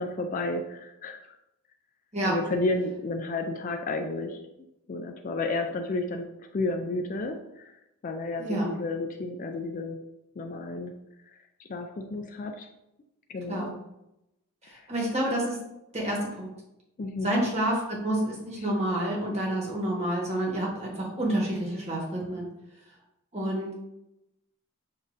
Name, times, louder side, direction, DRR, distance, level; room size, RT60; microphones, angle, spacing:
voice 1, 0.0-1.4 2.2-10.0 10.4-10.9 11.2-12.7 13.3-13.8 14.6-14.9 17.0-17.4 18.6-18.7, left 2 dB, 40° left, 5 dB, 0.3 m, -32 dB
voice 2, 14.6-15.6 15.9-16.5 17.2-22.5 23.3-23.7, right 1 dB, 30° right, -3 dB, 1.3 m, -28 dB
7.0 x 2.6 x 2.6 m, 0.88 s
head